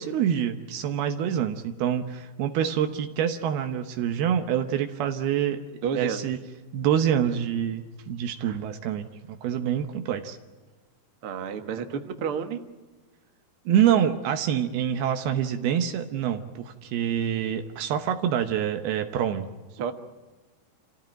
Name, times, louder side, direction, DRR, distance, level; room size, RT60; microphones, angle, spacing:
voice 1, 0.0-5.6 5.9-6.4 6.7-10.4 13.7-19.5, right 9 dB, 80° right, 7 dB, 3.0 m, -26 dB
voice 2, 5.8-6.3 11.2-12.6 19.8-19.9, right 7 dB, 55° right, 6 dB, 1.6 m, -30 dB
28.0 x 15.5 x 9.0 m, 1.3 s
omnidirectional pair, 4.5 m